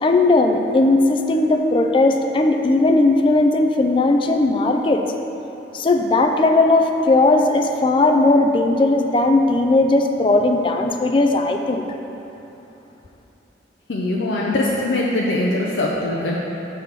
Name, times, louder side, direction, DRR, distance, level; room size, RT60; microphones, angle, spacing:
voice 1, 0.0-5.0 5.7-11.8, left 2 dB, 30° left, 4 dB, 0.3 m, -17 dB
voice 2, 13.9-16.4, left 2 dB, 80° left, -4 dB, 0.6 m, -22 dB
7.3 x 3.4 x 5.8 m, 3.0 s
head